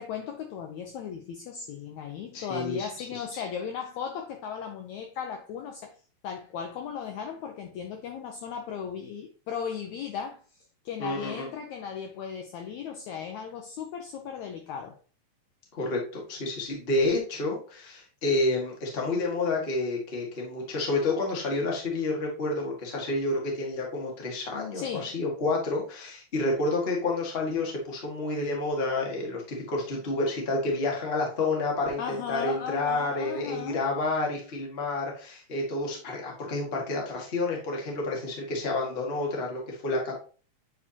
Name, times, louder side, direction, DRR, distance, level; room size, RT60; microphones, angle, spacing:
voice 1, 0.0-5.9 6.2-10.4 10.9-15.0 24.7-25.1 32.0-33.8, left 7 dB, 75° left, 1.7 m, -36 dB
voice 2, 2.3-3.4 11.0-11.5 15.7-40.2, left 2 dB, 25° left, 1.3 m, -29 dB
8.8 x 4.7 x 2.8 m
omnidirectional pair, 3.9 m